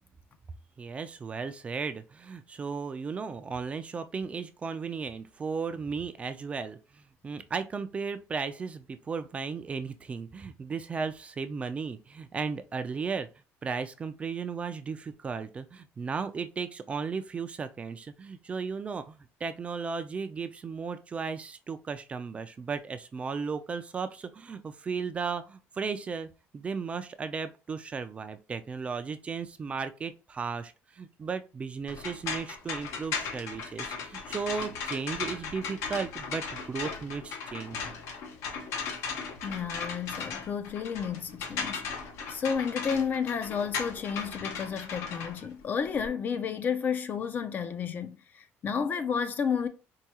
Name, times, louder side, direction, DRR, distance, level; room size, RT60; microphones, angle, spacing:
voice 1, 0.8-13.3 13.6-37.8, right 5 dB, 25° right, 0.4 m, -35 dB
sound 1, 31.9-46.1, left 5 dB, 70° left, 0.8 m, -37 dB
voice 2, 39.4-41.9 42.3-49.7, left 6 dB, 40° left, 0.5 m, -31 dB
4.6 x 2.3 x 2.8 m
cardioid pair, 140°, 5 cm